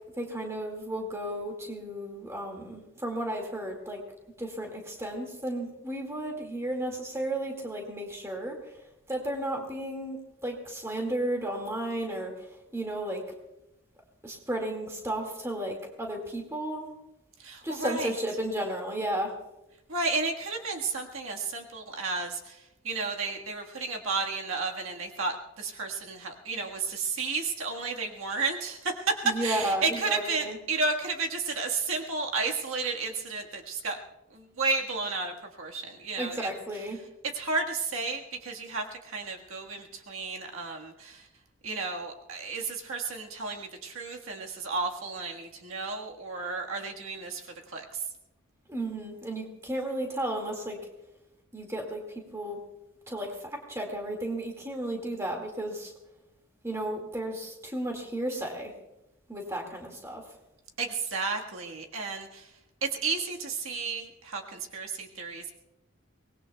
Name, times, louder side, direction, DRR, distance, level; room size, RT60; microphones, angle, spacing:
voice 1, 0.2-4.0 4.4-8.8 9.1-13.2 14.2-16.9 17.6-19.3 29.2-30.6 36.2-37.0 48.7-50.8 51.5-52.0 52.3-52.6 53.1-55.9 56.6-58.7 59.3-60.2, right 1 dB, 15° right, 1 dB, 2.0 m, -33 dB
voice 2, 17.4-18.1 19.9-29.1 29.4-34.0 34.3-36.5 37.3-41.3 41.6-47.5 47.7-48.0 60.8-62.5 62.8-65.5, right 4 dB, 75° right, 1 dB, 1.6 m, -32 dB
24.0 x 19.5 x 2.3 m, 0.92 s
head